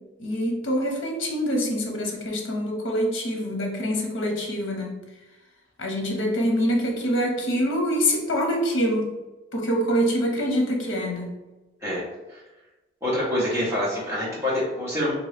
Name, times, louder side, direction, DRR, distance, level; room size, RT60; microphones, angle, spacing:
voice 1, 0.2-5.0 5.8-9.1 9.5-11.3, equal, 80° left, 1 dB, 0.8 m, -25 dB
voice 2, 13.0-15.1, left 1 dB, 15° right, -7 dB, 1.0 m, -26 dB
2.9 x 2.6 x 3.3 m, 1.1 s
head